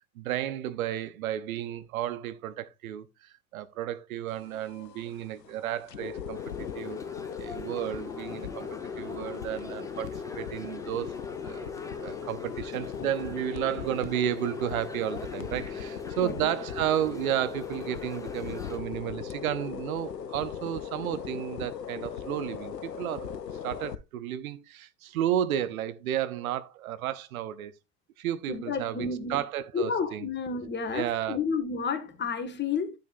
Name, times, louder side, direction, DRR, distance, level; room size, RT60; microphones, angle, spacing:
voice 1, 0.2-7.0 7.4-11.1 11.4-11.7 12.0-23.3 23.6-27.7 28.2-30.3 30.9-31.4, right 11 dB, 60° right, 0.9 m, -32 dB
sound 1, 4.3-24.0, left 7 dB, 85° left, 0.7 m, -38 dB
sound 2, 6.3-18.8, left 2 dB, 5° left, 1.3 m, -47 dB
voice 2, 12.7-13.3 16.2-16.6 28.5-29.4 29.7-32.9, left 5 dB, 20° left, 1.7 m, -31 dB
11.0 x 7.6 x 2.6 m
figure-of-eight pair, 80°, 48 cm